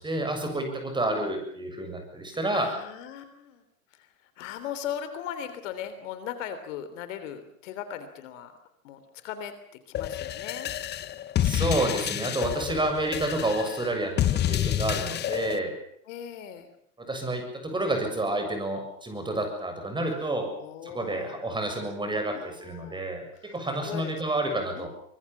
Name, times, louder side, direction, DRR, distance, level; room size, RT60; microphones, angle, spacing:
voice 1, 0.0-2.7 11.4-15.7 17.0-20.5 20.8-24.9, right 2 dB, 10° right, 5 dB, 7.3 m, -29 dB
voice 2, 2.5-3.6 3.9-8.6 8.8-10.7 16.1-16.7 20.6-21.6 22.3-23.5 23.8-24.2 24.7-24.9, left 9 dB, 60° left, 11 dB, 3.5 m, -39 dB
sound 1, 9.9-15.6, left 12 dB, 25° left, 1.0 m, -29 dB
24.5 x 21.5 x 7.2 m, 0.67 s
hypercardioid pair, 110°, 43 cm